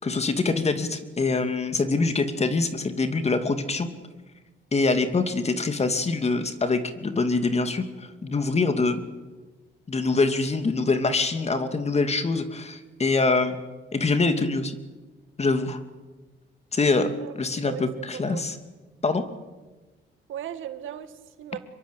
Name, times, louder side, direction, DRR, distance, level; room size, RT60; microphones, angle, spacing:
voice 1, 0.0-3.9 4.7-9.0 9.9-13.6 13.9-14.7 15.4-15.8 16.7-17.1 17.4-18.6 19.0-19.3, left 3 dB, 30° left, 9 dB, 2.7 m, -24 dB
voice 2, 17.6-18.4 20.3-21.6, right 10 dB, 80° right, 10 dB, 2.0 m, -37 dB
25.5 x 22.5 x 8.4 m, 1.2 s
cardioid pair, 90°, 20 cm